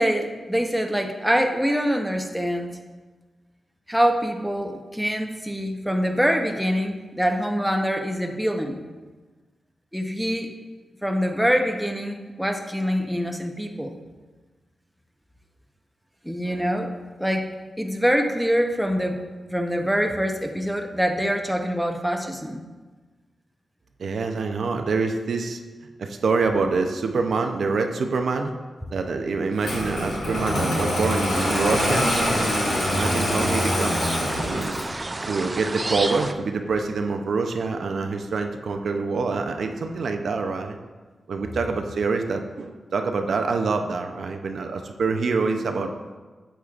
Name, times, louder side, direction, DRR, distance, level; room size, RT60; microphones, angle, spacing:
voice 1, 0.0-2.7 3.9-8.8 9.9-10.5 11.0-14.0 16.2-16.9 17.2-17.5 17.8-22.6, equal, ahead, 3 dB, 0.8 m, -24 dB
voice 2, 24.0-25.6 26.0-28.5 28.9-32.5 32.9-34.7 35.2-40.8 41.3-45.9, right 4 dB, 75° right, 5 dB, 0.5 m, -26 dB
Engine starting, 29.6-35.0, left 1 dB, 85° left, 1.7 m, -25 dB
sound 1, 31.3-36.3, right 2 dB, 30° right, 0.4 m, -31 dB
8.1 x 7.3 x 2.4 m, 1.3 s
cardioid pair, 60°, 0 cm